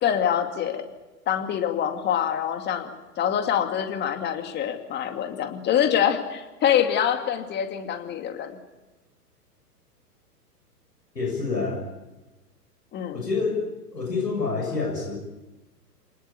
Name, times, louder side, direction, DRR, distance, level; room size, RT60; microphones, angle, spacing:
voice 1, 0.0-0.8 1.3-8.6 12.9-13.2, left 9 dB, 20° left, 6 dB, 2.5 m, -25 dB
voice 2, 11.1-11.8 13.1-13.6 13.9-15.2, left 4 dB, 85° left, 0 dB, 7.3 m, -27 dB
28.5 x 19.5 x 8.6 m, 1.1 s
figure-of-eight pair, 110°, 48 cm